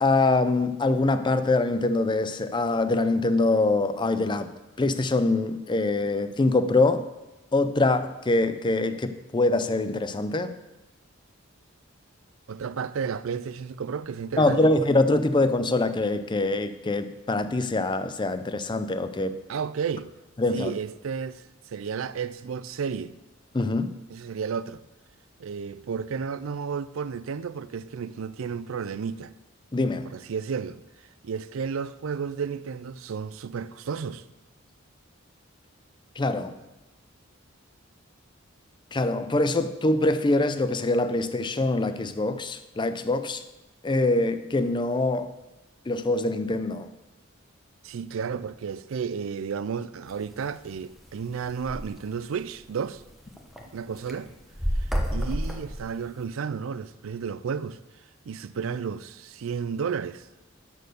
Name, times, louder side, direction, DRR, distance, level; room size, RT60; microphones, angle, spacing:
voice 1, 0.0-4.5 4.8-7.1 7.5-10.5 14.4-19.3 20.4-20.7 23.5-24.0 29.7-30.1 36.2-36.5 38.9-43.4 43.8-45.3 45.9-46.9, left 2 dB, 25° left, 0.5 m, -24 dB
voice 2, 12.5-14.8 19.5-20.1 20.5-23.2 24.1-24.9 25.4-29.3 30.0-30.8 31.2-34.2 47.8-53.0 53.7-54.3 54.8-57.8 58.3-60.3, right 6 dB, 80° right, 0.4 m, -32 dB
sound 1, 50.1-50.3 50.8-50.9 51.1-51.2 51.4-51.8 52.4-52.5 52.9-53.6 54.0-56.2, equal, ahead, 0.9 m, -29 dB
11.5 x 4.5 x 6.6 m
head